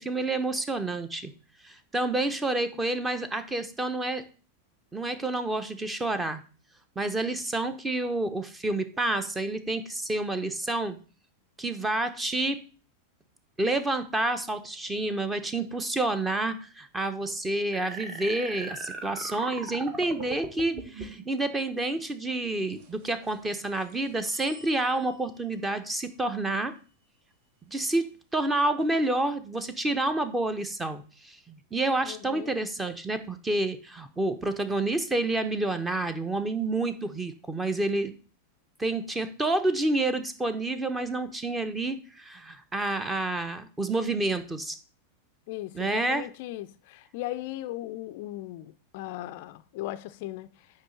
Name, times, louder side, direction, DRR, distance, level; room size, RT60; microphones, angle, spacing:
voice 1, 0.0-1.3 1.6-4.2 4.9-6.4 7.0-11.0 11.6-12.6 13.6-26.7 27.7-38.1 38.8-44.7 45.7-46.3, right 2 dB, 15° right, 1.0 m, -29 dB
sound 1, 17.7-21.2, right 3 dB, 30° right, 1.5 m, -39 dB
sound 2, 22.7-27.2, right 4 dB, 50° right, 1.5 m, -52 dB
voice 2, 32.1-32.5 45.5-50.8, left 15 dB, 50° left, 0.4 m, -38 dB
9.4 x 3.2 x 6.6 m
figure-of-eight pair, 90°, 0 cm